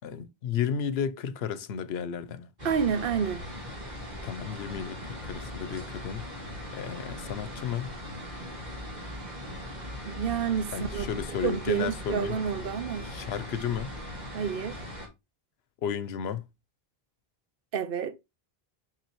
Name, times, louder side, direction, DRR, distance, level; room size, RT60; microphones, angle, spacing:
voice 1, 0.0-2.5 4.2-6.3 6.7-7.9 10.7-12.4 13.0-13.9 15.8-16.5, left 8 dB, 85° left, 0.9 m, -33 dB
sound 1, 2.6-15.1, left 1 dB, 45° right, 2.0 m, -39 dB
voice 2, 2.6-3.4 10.0-11.1 11.4-13.1 14.3-14.8 17.7-18.2, right 7 dB, 65° right, 0.8 m, -29 dB
5.9 x 5.5 x 2.9 m
omnidirectional pair, 1.0 m